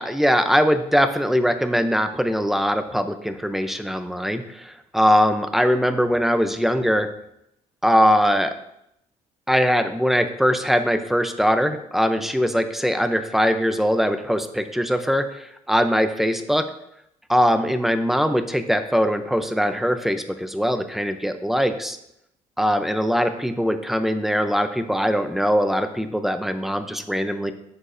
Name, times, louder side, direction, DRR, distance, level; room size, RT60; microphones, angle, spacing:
voice 1, 0.0-7.1 7.8-8.5 9.5-16.7 17.3-22.0 22.6-27.5, equal, ahead, 9 dB, 0.6 m, -21 dB
11.0 x 7.1 x 2.6 m, 0.78 s
cardioid pair, 125°, 14 cm